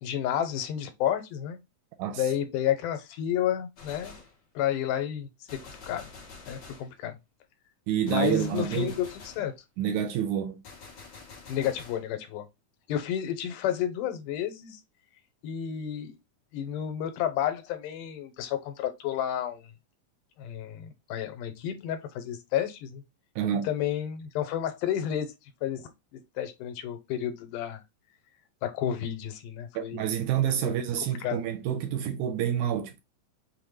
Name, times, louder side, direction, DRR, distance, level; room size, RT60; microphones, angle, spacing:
voice 1, 0.0-1.6 2.2-4.1 4.6-6.1 6.5-7.2 8.1-9.1 9.4-9.5 11.5-12.5 12.9-14.8 15.4-16.2 16.5-19.7 20.4-23.0 23.6-25.3 25.6-27.8 28.6-30.1 30.6-30.7 31.2-31.4, left 10 dB, 90° left, 2.3 m, -31 dB
Gunshot gunfire, 3.8-4.4 5.5-6.9 8.1-9.5 10.6-12.1, left 4 dB, 55° left, 1.2 m, -47 dB
voice 2, 7.9-9.0 9.8-10.6 23.4-23.7 29.8-33.0, right 9 dB, 80° right, 1.9 m, -28 dB
5.5 x 2.1 x 3.2 m
omnidirectional pair, 3.7 m